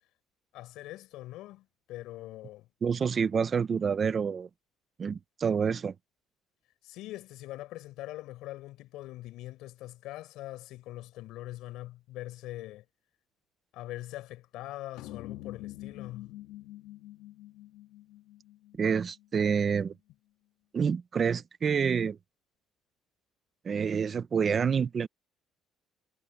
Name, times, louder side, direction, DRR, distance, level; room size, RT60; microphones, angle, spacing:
voice 1, 0.5-2.7 6.8-12.8 13.7-16.3, left 16 dB, 70° left, 4.8 m, -42 dB
voice 2, 2.8-4.5 5.0-5.9 18.8-19.9 20.7-22.2 23.6-25.1, right 6 dB, 25° right, 0.6 m, -28 dB
sound 1, 15.0-19.6, left 16 dB, 90° left, 3.0 m, -46 dB
cardioid pair, 175°, 0 cm